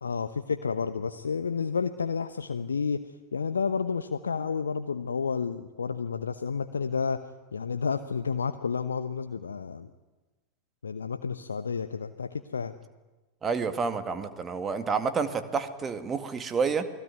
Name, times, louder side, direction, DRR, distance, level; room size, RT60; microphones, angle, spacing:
voice 1, 0.0-7.2 7.5-9.9 10.8-12.7, left 5 dB, 70° left, 9 dB, 0.9 m, -31 dB
voice 2, 13.4-16.9, right 5 dB, 20° right, 8 dB, 2.1 m, -29 dB
28.5 x 20.5 x 9.6 m, 1.2 s
figure-of-eight pair, 90°, 0 cm